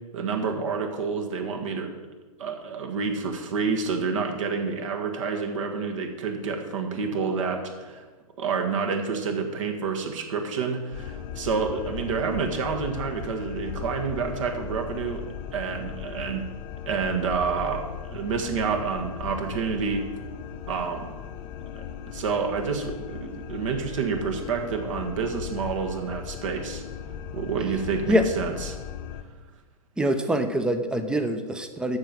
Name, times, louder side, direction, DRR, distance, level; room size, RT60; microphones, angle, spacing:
voice 1, 0.1-1.9 2.4-8.0 8.4-15.2 15.5-16.4 16.9-17.8 18.1-20.0 20.7-21.1 22.1-26.8 27.3-28.8, right 5 dB, 55° right, 4 dB, 1.6 m, -28 dB
sound 1, 10.9-29.2, left 9 dB, 35° left, 1.0 m, -38 dB
voice 2, 30.0-32.0, equal, 5° right, 9 dB, 0.7 m, -24 dB
13.0 x 4.7 x 7.5 m, 1.3 s
figure-of-eight pair, 110°, 19 cm